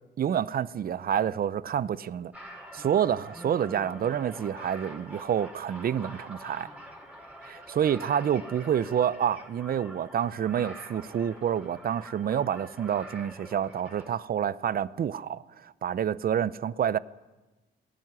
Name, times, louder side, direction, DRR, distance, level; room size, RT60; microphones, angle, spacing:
voice 1, 0.2-2.3 2.7-6.7 7.4-17.0, right 9 dB, 50° right, 0.7 m, -28 dB
sound 1, 2.3-14.1, equal, 5° right, 5.2 m, -46 dB
19.5 x 13.5 x 9.7 m
cardioid pair, 90°, 20 cm